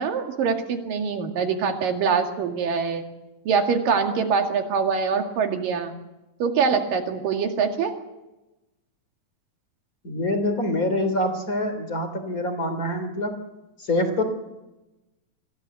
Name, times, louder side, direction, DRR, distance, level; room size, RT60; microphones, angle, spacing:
voice 1, 0.0-3.0 3.5-5.9 6.4-7.9, right 5 dB, 75° right, 4 dB, 3.9 m, -24 dB
voice 2, 10.0-13.3 13.8-14.2, left 1 dB, 25° left, 8 dB, 3.3 m, -25 dB
25.0 x 16.5 x 8.3 m, 0.98 s
omnidirectional pair, 3.9 m